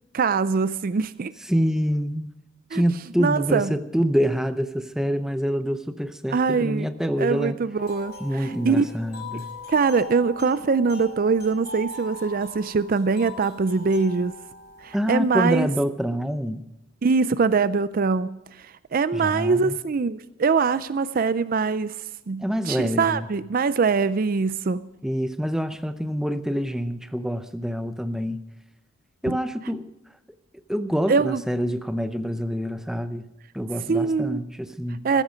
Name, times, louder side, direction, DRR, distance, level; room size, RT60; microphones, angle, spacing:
voice 1, 0.1-1.3 2.7-2.8 3.2-3.7 6.3-6.9 7.2-8.8 9.7-14.3 14.8-15.7 17.0-22.0 22.3-24.8 29.3-29.4 31.1-31.4 33.9-34.4 35.0-35.2, right 4 dB, 45° right, 15 dB, 0.4 m, -23 dB
voice 2, 1.5-2.3 2.7-7.6 8.2-9.5 14.9-16.6 19.1-19.8 22.4-23.3 25.0-28.4 29.2-29.9 30.5-33.3 33.5-35.1, equal, ahead, 9 dB, 0.7 m, -26 dB
sound 1, 7.8-15.6, left 2 dB, 50° left, 5.3 m, -41 dB
15.5 x 13.5 x 5.1 m, 0.92 s
head